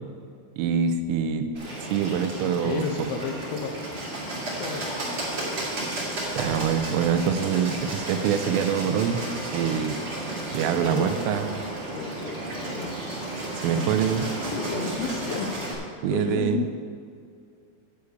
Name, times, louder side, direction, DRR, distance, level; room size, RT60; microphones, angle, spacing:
voice 1, 0.6-1.5 1.9-3.1 6.4-9.2 9.5-10.0 10.5-11.5 13.5-14.3 16.0-16.7, right 7 dB, 85° right, 8 dB, 3.2 m, -25 dB
Bird, 1.5-15.7, right 1 dB, 40° right, 2.0 m, -33 dB
voice 2, 2.0-3.7 4.6-4.9 10.8-11.2 11.9-12.4 12.7-12.9 13.8-15.6 16.0-16.7, left 7 dB, 85° left, 4 dB, 2.8 m, -33 dB
11.0 x 4.8 x 8.3 m, 2.2 s
omnidirectional pair, 5.8 m